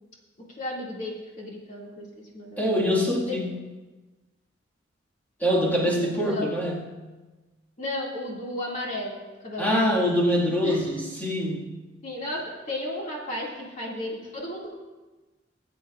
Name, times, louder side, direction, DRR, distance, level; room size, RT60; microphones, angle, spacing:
voice 1, 0.6-2.1 2.3-2.6 3.2-3.4 6.1-6.5 7.8-10.1 10.6-10.8 12.0-12.4 12.7-14.7, left 1 dB, 40° left, -4 dB, 2.2 m, -34 dB
voice 2, 2.6-3.5 5.4-7.0 9.6-11.9, equal, 10° left, -4 dB, 1.9 m, -24 dB
19.5 x 8.6 x 2.5 m, 1.2 s
head